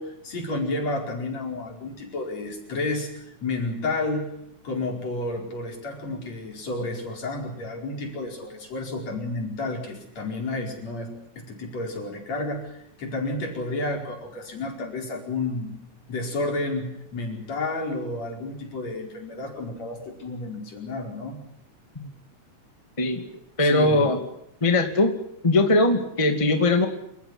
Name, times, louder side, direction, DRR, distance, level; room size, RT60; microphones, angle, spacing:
voice 1, 0.0-4.3 4.6-15.7 16.1-21.4 23.6-24.1, left 2 dB, 60° left, 2 dB, 6.0 m, -31 dB
voice 2, 23.6-24.2 24.6-25.1 25.4-26.9, left 2 dB, 10° left, 5 dB, 2.1 m, -20 dB
28.5 x 14.5 x 9.9 m, 0.79 s
omnidirectional pair, 3.5 m